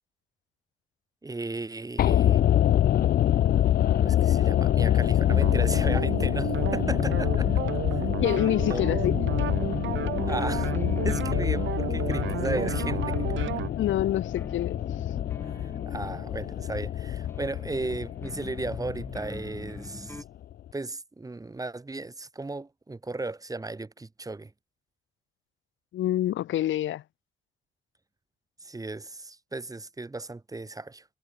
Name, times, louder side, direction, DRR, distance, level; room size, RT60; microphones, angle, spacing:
voice 1, 1.2-2.6 3.9-7.5 7.9-8.1 8.6-9.0 10.3-10.7 11.0-13.5 15.5-20.2 20.7-24.5 28.6-31.0, right 2 dB, 15° right, 1.8 m, -35 dB
sound 1, 2.0-20.2 20.4-20.5, left 11 dB, 50° left, 0.4 m, -26 dB
sound 2, 5.3-13.7, right 12 dB, 75° right, 1.6 m, -33 dB
voice 2, 8.2-9.4 13.8-14.8 25.9-27.0, left 13 dB, 75° left, 1.6 m, -27 dB
sound 3, 9.0-20.2, left 2 dB, 10° left, 7.2 m, -43 dB
cardioid pair, 90°, 20 cm